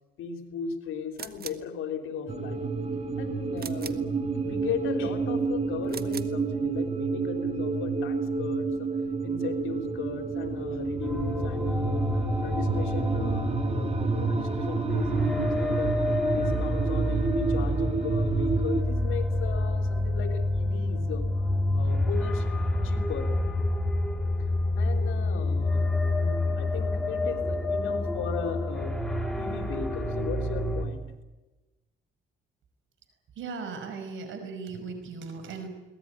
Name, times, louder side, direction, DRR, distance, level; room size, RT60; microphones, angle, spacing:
voice 1, 0.2-2.6 3.2-8.9 9.2-16.0 16.3-22.6 22.8-23.4 24.8-31.1, left 7 dB, 85° left, 6 dB, 3.6 m, -37 dB
sound 1, 1.1-1.7 3.6-4.1 5.8-6.4, right 7 dB, 50° right, 1.6 m, -41 dB
sound 2, 2.3-18.8, right 4 dB, 30° right, 2.5 m, -29 dB
sound 3, 11.0-30.9, left 1 dB, 5° left, 4.6 m, -28 dB
voice 2, 33.4-35.7, right 4 dB, 75° right, 7 dB, 5.5 m, -37 dB
22.5 x 19.0 x 9.9 m, 1.1 s
cardioid pair, 90°, 20 cm